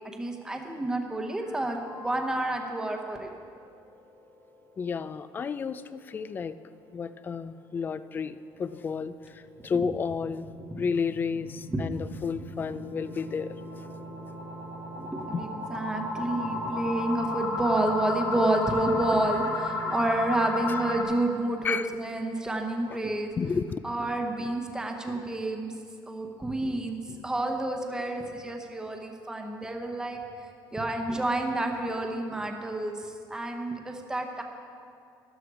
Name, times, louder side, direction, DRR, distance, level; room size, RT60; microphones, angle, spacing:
voice 1, 0.2-3.3 9.7-9.9 11.7-11.8 14.9-23.3 23.8-25.7 26.1-30.2 30.7-34.4, right 1 dB, 10° right, 3 dB, 1.0 m, -29 dB
sound 1, 1.4-2.9 3.3-3.4 3.8-3.9 4.3-4.4 9.2-21.0, left 2 dB, 55° left, 1.9 m, -34 dB
voice 2, 4.8-6.6 6.9-13.6 15.3-15.4 20.4-20.8 21.6-21.9 23.4-23.8, left 5 dB, 25° left, 14 dB, 0.4 m, -32 dB
13.0 x 12.5 x 4.8 m, 2.4 s
cardioid pair, 155°, 8 cm